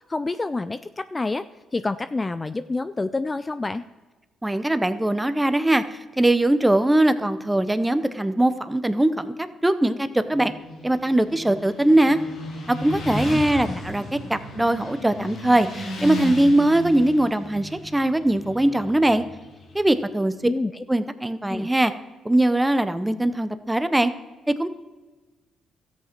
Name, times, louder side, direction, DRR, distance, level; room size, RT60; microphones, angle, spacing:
voice 1, 0.1-1.5 1.7-3.8 13.3-13.8 20.4-20.8 21.5-21.7, left 3 dB, 20° left, 13 dB, 0.4 m, -28 dB
voice 2, 4.4-5.8 6.2-10.5 10.8-12.2 12.7-19.2 19.7-20.3 20.9-21.9 22.2-24.1 24.6-24.7, right 1 dB, 10° right, 12 dB, 0.8 m, -21 dB
Motorcycle, 10.2-20.0, equal, 65° left, 2.1 m, -35 dB
13.5 x 8.3 x 4.5 m, 1.2 s
cardioid pair, 90°, 0 cm